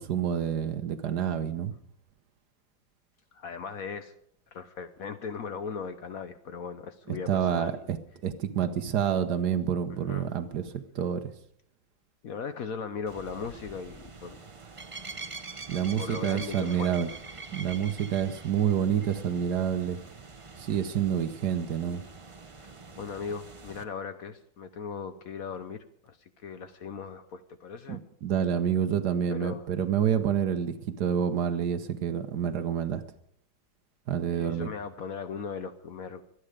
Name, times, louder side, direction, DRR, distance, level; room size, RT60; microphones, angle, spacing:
voice 1, 0.0-1.7 7.3-8.0 8.2-11.3 15.7-17.1 17.5-20.0 20.6-22.0 27.9-33.0 34.1-34.7, right 9 dB, 65° right, 10 dB, 1.4 m, -28 dB
voice 2, 3.3-4.1 4.5-7.9 9.9-10.3 12.2-14.4 16.0-17.0 22.6-28.0 29.3-29.7 34.3-36.2, left 6 dB, 60° left, 10 dB, 1.1 m, -38 dB
sound 1, 13.1-23.8, right 4 dB, 35° right, 0.5 m, -45 dB
25.0 x 9.8 x 5.0 m, 0.69 s
omnidirectional pair, 2.0 m